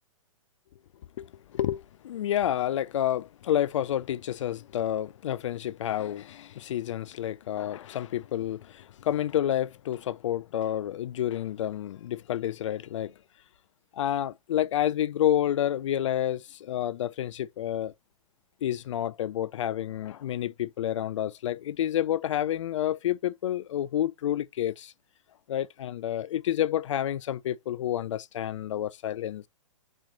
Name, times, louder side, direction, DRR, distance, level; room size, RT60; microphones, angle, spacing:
voice 1, 1.2-13.1 13.9-17.9 18.6-24.9 25.5-29.5, left 11 dB, 65° left, 0.4 m, -29 dB
4.1 x 3.1 x 3.8 m
hypercardioid pair, 115°, 17 cm